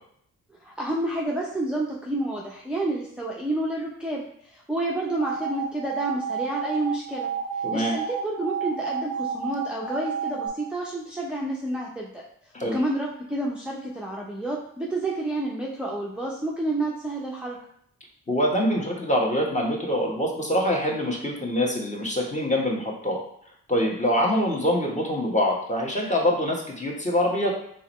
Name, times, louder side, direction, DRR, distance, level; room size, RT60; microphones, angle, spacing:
voice 1, 0.6-7.3 7.7-12.2 12.6-17.6, right 2 dB, 5° right, -4 dB, 0.7 m, -29 dB
sound 1, 5.2-10.5, right 6 dB, 55° left, 1.6 m, -31 dB
voice 2, 18.3-23.2 23.7-27.5, equal, 20° left, -2 dB, 1.3 m, -24 dB
3.8 x 3.1 x 3.1 m, 0.67 s
supercardioid pair, 40°, 34 cm